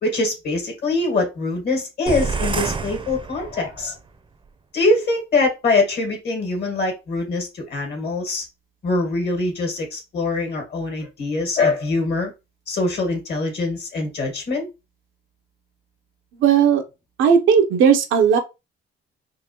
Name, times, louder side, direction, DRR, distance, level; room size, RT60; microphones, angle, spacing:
voice 1, 0.0-4.0 4.7-8.5 8.8-12.3 12.7-14.7, left 3 dB, 55° left, 1.7 m, -23 dB
sound 1, 2.1-3.9, right 4 dB, 25° right, 0.6 m, -27 dB
voice 2, 16.4-16.8 17.2-18.4, right 7 dB, 80° right, 0.7 m, -16 dB
3.8 x 2.5 x 2.9 m
cardioid pair, 90°, 20 cm